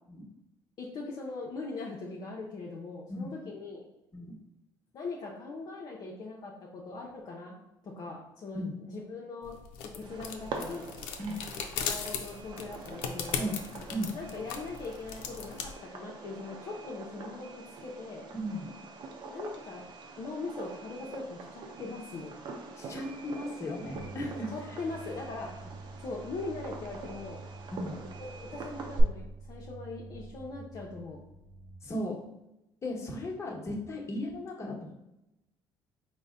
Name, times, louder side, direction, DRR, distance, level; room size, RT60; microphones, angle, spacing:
voice 1, 0.8-3.9 4.9-9.6 9.9-10.9 11.8-13.5 14.1-18.3 19.3-19.9 20.2-22.3 24.5-25.5 26.0-27.4 28.4-31.2, left 3 dB, 55° left, -3 dB, 0.7 m, -40 dB
sound 1, 9.4-15.7, left 7 dB, 90° left, 0.5 m, -38 dB
Fireworks, 10.0-29.0, right 3 dB, 55° right, 0.6 m, -44 dB
voice 2, 18.3-18.7 22.8-24.8 27.7-28.0 31.8-32.2 32.8-35.0, equal, 30° left, -1 dB, 1.1 m, -36 dB
sound 2, 23.8-31.7, right 3 dB, 5° left, 1.1 m, -47 dB
4.0 x 2.1 x 3.6 m, 0.91 s
supercardioid pair, 90°, 9 cm